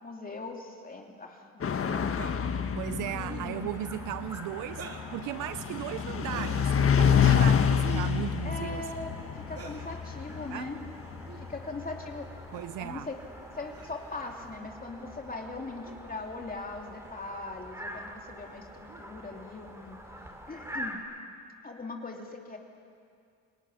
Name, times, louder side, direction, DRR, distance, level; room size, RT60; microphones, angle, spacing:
voice 1, 0.0-2.2 3.1-3.7 8.4-10.8 11.4-13.2 13.5-20.0 20.5-21.0 21.6-22.6, left 3 dB, 30° left, 3.0 m, -40 dB
sound 1, 1.6-12.6, left 7 dB, 45° left, 1.6 m, -28 dB
sound 2, 2.1-2.3 3.2-3.5 4.7-5.1 6.2-6.7 7.8-8.2 9.5-9.9 11.2-11.4 12.5-12.7 13.7-14.2 15.8-16.0 17.0-17.2 17.8-18.1 18.9-19.1 20.6-21.0, right 6 dB, 50° right, 2.7 m, -45 dB
voice 2, 2.7-8.9 10.5-10.7 12.5-13.1, right 14 dB, 90° right, 0.6 m, -37 dB
sound 3, 3.0-21.0, equal, 10° right, 4.8 m, -46 dB
28.5 x 18.0 x 10.0 m
cardioid pair, 90°, 30 cm